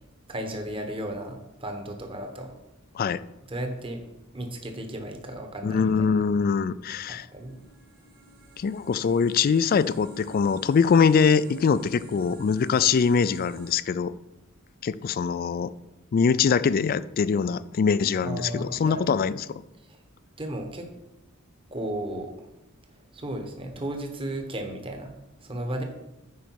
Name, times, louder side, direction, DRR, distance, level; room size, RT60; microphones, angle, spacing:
voice 1, 0.3-2.5 3.5-4.0 4.3-5.9 7.1-7.6 18.2-19.1 19.9-20.0 20.4-20.9 21.7-22.5 23.1-25.1 25.4-25.8, right 1 dB, 25° right, 4 dB, 1.0 m, -34 dB
voice 2, 5.6-7.3 8.6-14.1 14.8-15.7 16.1-19.6, left 6 dB, 45° left, 17 dB, 0.3 m, -23 dB
sound 1, 7.0-13.8, right 1 dB, 45° right, 1.5 m, -48 dB
9.4 x 5.0 x 4.6 m, 0.94 s
head